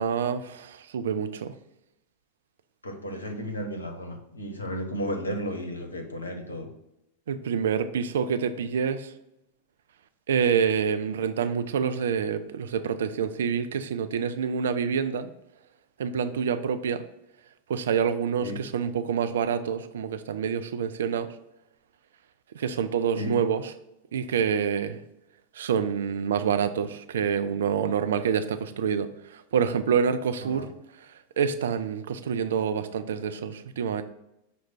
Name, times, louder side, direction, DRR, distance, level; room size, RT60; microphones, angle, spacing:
voice 1, 0.0-1.5 7.3-9.1 10.3-15.3 16.0-17.0 17.7-21.3 22.5-23.7 24.1-25.0 25.6-30.7 31.4-34.0, right 7 dB, 60° right, 10 dB, 0.3 m, -27 dB
voice 2, 2.8-6.7 18.4-18.6 23.1-23.4 30.4-30.6, equal, 75° left, 4 dB, 0.7 m, -33 dB
6.1 x 2.1 x 4.1 m, 0.86 s
figure-of-eight pair, 90°, 0 cm